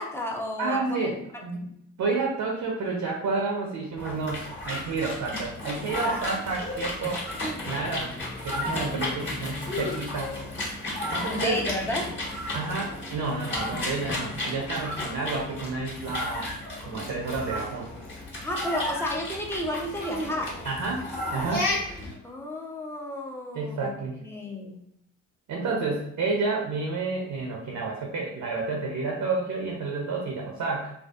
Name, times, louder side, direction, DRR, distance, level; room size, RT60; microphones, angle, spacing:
voice 1, 0.0-1.7 11.1-12.1 18.4-20.6 22.2-23.9 24.2-24.8, left 1 dB, 5° left, 0 dB, 0.6 m, -32 dB
voice 2, 0.6-1.7 2.0-7.3 7.7-8.1 8.4-10.3 11.1-11.6 12.5-16.5 16.8-17.9 20.6-21.7 23.5-24.2 25.5-30.9, right 3 dB, 55° right, 0 dB, 0.7 m, -30 dB
swing and bottle shaking, 4.0-22.1, left 1 dB, 30° left, 1.3 m, -33 dB
2.5 x 2.3 x 2.3 m, 0.73 s
hypercardioid pair, 50°, 36 cm